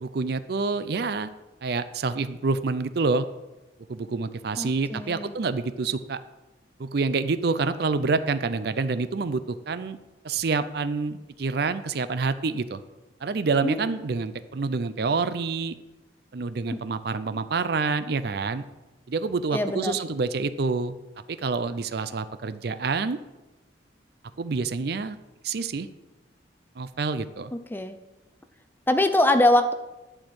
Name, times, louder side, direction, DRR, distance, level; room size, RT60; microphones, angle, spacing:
voice 1, 0.0-1.3 1.6-3.3 3.9-6.2 6.8-10.0 10.2-12.8 13.2-15.8 16.3-18.6 19.1-20.9 21.3-23.2 24.4-25.2 25.4-25.9 26.8-27.5, right 4 dB, 55° right, 13 dB, 0.5 m, -27 dB
voice 2, 4.6-5.3 13.6-13.8 19.5-20.0 27.5-28.0 28.9-29.7, left 1 dB, 10° left, 9 dB, 0.5 m, -23 dB
11.0 x 4.4 x 7.7 m, 1.1 s
head